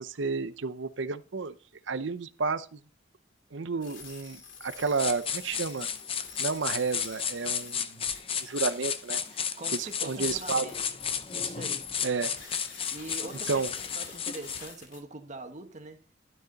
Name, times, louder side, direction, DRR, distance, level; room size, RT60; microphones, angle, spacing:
voice 1, 0.0-1.6 1.9-2.8 3.5-5.9 6.4-8.1 8.4-9.2 9.7-10.7 12.0-12.3 13.5-13.7, right 4 dB, 70° right, 0.7 m, -31 dB
sound 1, 3.8-15.0, left 5 dB, 85° left, 2.5 m, -49 dB
sound 2, 5.0-14.7, left 7 dB, 30° left, 0.6 m, -33 dB
voice 2, 9.6-10.8 11.3-11.9 12.9-16.0, right 2 dB, 40° right, 1.5 m, -43 dB
12.0 x 6.7 x 4.1 m
head